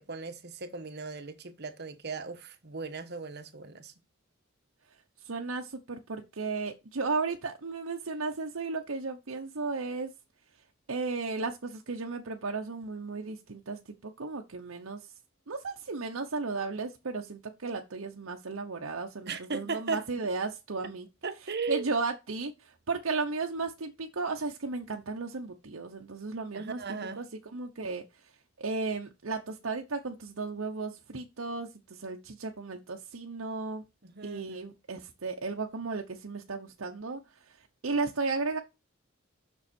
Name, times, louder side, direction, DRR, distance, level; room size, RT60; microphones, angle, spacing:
voice 1, 0.0-3.9 19.3-20.0 21.2-21.8 26.5-27.3 34.0-34.7, right 4 dB, 55° right, 1.2 m, -37 dB
voice 2, 5.2-10.1 10.9-15.1 15.5-21.1 21.7-26.8 27.2-27.3 27.5-28.3 28.6-33.8 34.2-38.6, right 3 dB, 70° right, 0.9 m, -35 dB
7.1 x 6.2 x 4.3 m
head